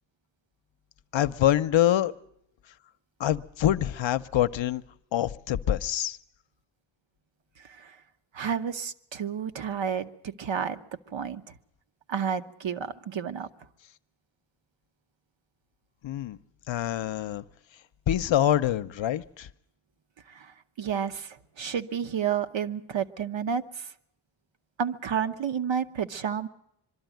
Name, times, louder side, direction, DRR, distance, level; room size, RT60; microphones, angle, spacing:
voice 1, 1.1-2.1 3.2-4.8 5.1-6.2 16.0-16.4 16.7-17.4 18.1-19.5, left 12 dB, 70° left, 0.7 m, -25 dB
voice 2, 8.3-10.8 11.1-11.5 12.1-13.5 20.3-23.9 24.8-26.5, right 7 dB, 70° right, 1.0 m, -31 dB
23.0 x 13.0 x 9.1 m
wide cardioid pair, 155°, 47 cm